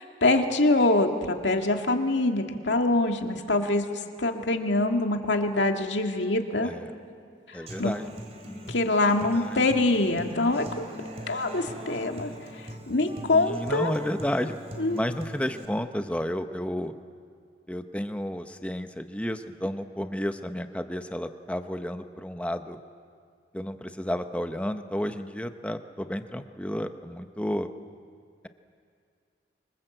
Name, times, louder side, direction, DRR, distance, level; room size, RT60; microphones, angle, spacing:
voice 1, 0.0-6.7 7.8-7.9 8.7-10.8 11.3-12.3 12.9-13.9 14.8-15.0, left 2 dB, 80° left, 4 dB, 2.1 m, -24 dB
voice 2, 7.5-8.1 8.4-8.7 9.2-9.6 13.3-14.6 14.9-16.9 17.7-22.8 23.5-27.7, equal, 5° left, 8 dB, 0.9 m, -32 dB
Human voice / Acoustic guitar, 7.7-15.6, equal, 35° right, 2.8 m, -42 dB
27.0 x 25.0 x 7.9 m, 2.2 s
head